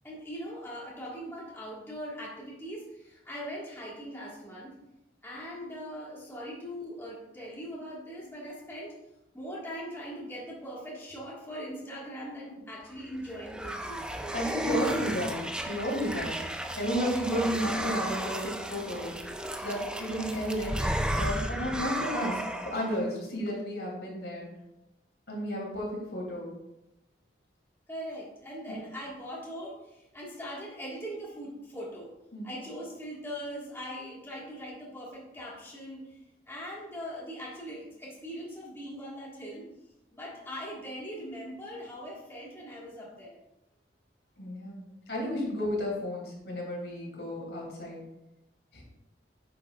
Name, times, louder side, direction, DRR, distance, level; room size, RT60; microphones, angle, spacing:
voice 1, 0.0-4.8 5.2-8.9 9.3-14.7 16.0-16.3 27.9-32.1 32.4-36.2 36.5-39.7 40.1-43.4, equal, 15° left, -5 dB, 1.8 m, -41 dB
sound 1, 13.0-23.0, right 1 dB, 5° right, 0.4 m, -34 dB
voice 2, 14.3-15.4 15.7-16.3 16.8-19.1 19.6-20.9 21.1-24.5 25.3-26.5 32.3-32.5 44.4-44.8 45.1-48.0 48.7-48.8, equal, 80° left, -3 dB, 3.0 m, -32 dB
9.8 x 7.1 x 2.5 m, 0.89 s
head